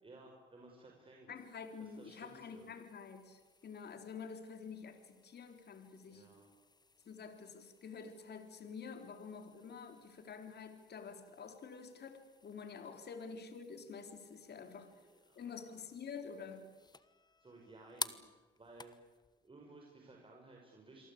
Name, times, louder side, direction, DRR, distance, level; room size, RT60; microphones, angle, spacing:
voice 1, 0.0-1.3 1.8-2.7 6.0-6.5 14.5-15.8 16.0-16.1 17.4-19.0 19.4-21.1, right 2 dB, 25° right, 0 dB, 5.5 m, -58 dB
voice 2, 1.3-6.3 7.1-14.9 15.4-16.7, left 5 dB, 55° left, 7 dB, 3.6 m, -48 dB
sound 1, 1.3-19.5, left 3 dB, 20° left, 1.3 m, -54 dB
28.0 x 23.0 x 8.6 m, 1.3 s
cardioid pair, 90°, 20 cm